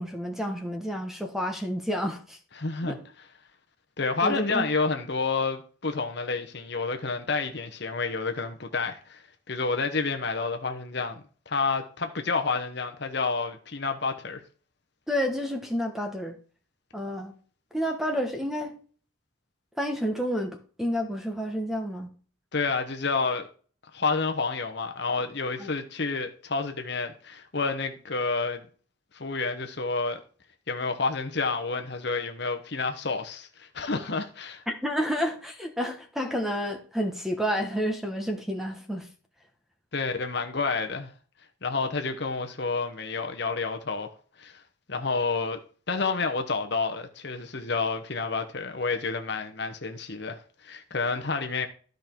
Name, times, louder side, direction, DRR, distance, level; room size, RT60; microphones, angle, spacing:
voice 1, 0.0-2.4 2.8-3.0 4.2-4.7 15.1-16.3 16.9-17.3 17.7-18.7 19.8-22.1 25.6-25.7 34.7-39.1, equal, ahead, 1.2 m, -30 dB
voice 2, 2.6-3.0 4.0-14.4 22.5-23.5 23.9-28.6 29.1-30.2 30.7-34.6 39.9-41.1 41.6-44.1 44.4-44.6 44.9-45.6 45.9-51.7, left 4 dB, 55° left, 1.1 m, -29 dB
13.0 x 5.3 x 4.5 m
head